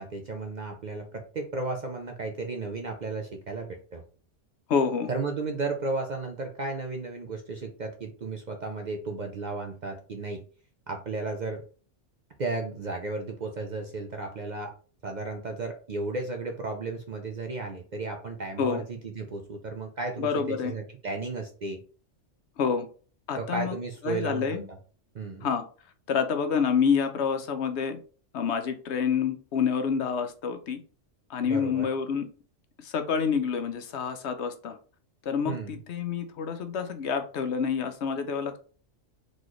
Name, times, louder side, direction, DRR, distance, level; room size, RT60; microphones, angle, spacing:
voice 1, 0.0-4.0 5.1-10.4 10.9-11.6 12.4-14.7 15.0-21.8 23.4-24.8 25.1-25.5 31.4-31.9 35.4-35.8, right 3 dB, 50° right, 4 dB, 0.6 m, -34 dB
voice 2, 4.7-5.1 18.6-18.8 20.2-20.7 22.6-22.9 23.3-23.7 24.0-24.6 25.4-25.6 26.1-28.0 28.3-30.8 31.3-32.3 32.8-34.8 35.2-38.6, left 6 dB, 65° left, 7 dB, 0.9 m, -28 dB
4.2 x 3.1 x 3.0 m, 0.39 s
omnidirectional pair, 1.3 m